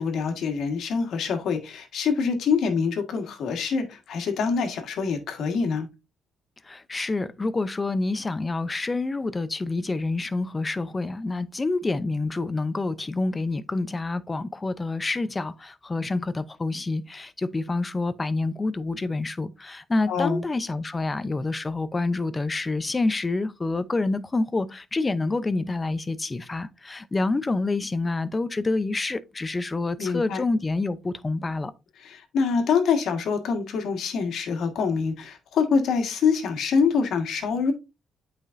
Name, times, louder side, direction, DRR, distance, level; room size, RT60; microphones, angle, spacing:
voice 1, 0.0-5.9 20.1-20.4 30.0-30.4 32.0-37.7, left 5 dB, 70° left, 1.6 m, -25 dB
voice 2, 6.7-31.7, left 3 dB, 25° left, 0.6 m, -27 dB
8.4 x 5.1 x 2.6 m
cardioid pair, 90°, 0 cm